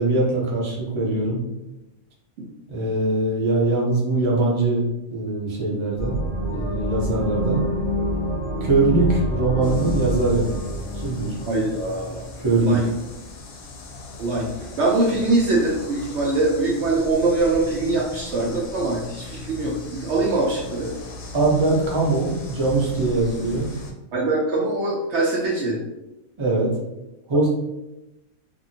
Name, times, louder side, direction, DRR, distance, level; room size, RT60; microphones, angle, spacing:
voice 1, 0.0-1.4 2.7-4.8 5.1-6.2 6.5-7.6 8.6-10.5 10.9-11.3 12.4-12.8 21.3-23.8 26.4-26.7 27.3-27.5, right 2 dB, 30° right, -4 dB, 0.6 m, -22 dB
sound 1, 6.0-12.6, equal, 25° left, 0.7 m, -27 dB
sound 2, 9.6-23.9, left 2 dB, 85° left, 1.0 m, -38 dB
voice 2, 11.4-12.2 12.6-12.8 14.2-20.9 24.1-25.8, right 2 dB, 65° right, -4 dB, 0.8 m, -23 dB
2.7 x 2.6 x 2.7 m, 0.94 s
omnidirectional pair, 1.5 m